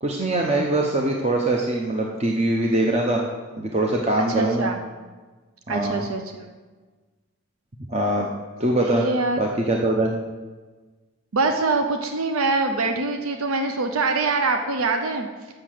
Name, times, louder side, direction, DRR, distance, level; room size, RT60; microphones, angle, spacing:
voice 1, 0.0-3.2 3.6-4.7 5.7-6.0 7.9-8.3 8.6-9.1 9.4-10.1, right 1 dB, 30° right, 0 dB, 0.7 m, -22 dB
voice 2, 4.3-4.8 5.7-6.5 8.8-9.4 11.3-15.3, right 3 dB, 75° right, 5 dB, 0.6 m, -24 dB
6.7 x 6.4 x 7.6 m, 1.3 s
head